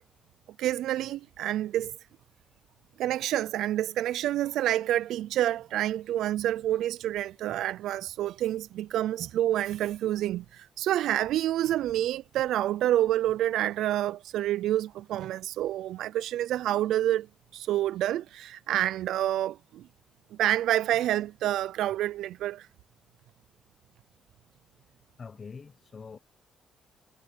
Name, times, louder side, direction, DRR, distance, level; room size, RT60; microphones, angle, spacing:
voice 1, 0.6-1.9 3.0-17.3 17.5-19.9 20.4-22.7, right 13 dB, 80° right, 0.3 m, -28 dB
voice 2, 25.2-26.2, left 5 dB, 40° left, 0.9 m, -44 dB
cardioid pair, 90°, 0 cm